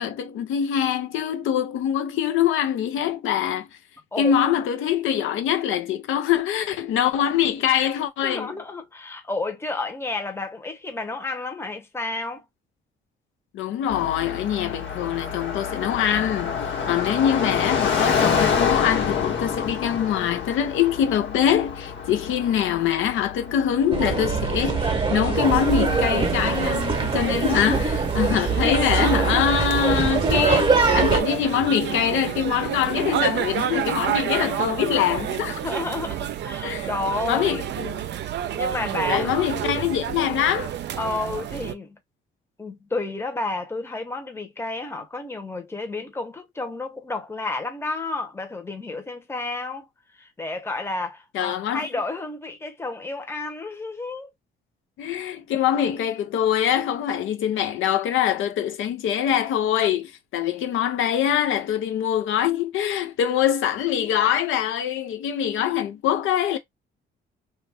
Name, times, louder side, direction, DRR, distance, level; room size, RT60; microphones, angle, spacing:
voice 1, 0.0-3.7 4.2-8.5 13.5-35.6 36.6-36.9 37.3-38.0 39.1-40.7 51.3-51.9 55.0-66.6, left 9 dB, 80° left, 0.6 m, -24 dB
voice 2, 4.1-4.5 8.2-12.5 27.4-27.7 35.6-37.9 38.5-39.5 41.0-42.0 42.6-49.9 50.1-54.3 63.8-64.1, left 3 dB, 10° left, 0.8 m, -31 dB
Car passing by, 13.9-25.0, left 6 dB, 65° left, 1.1 m, -27 dB
sound 1, 23.9-31.2, right 4 dB, 25° right, 0.8 m, -23 dB
sound 2, 25.3-41.7, right 10 dB, 60° right, 0.5 m, -29 dB
2.5 x 2.3 x 3.3 m
cardioid pair, 90°, 20 cm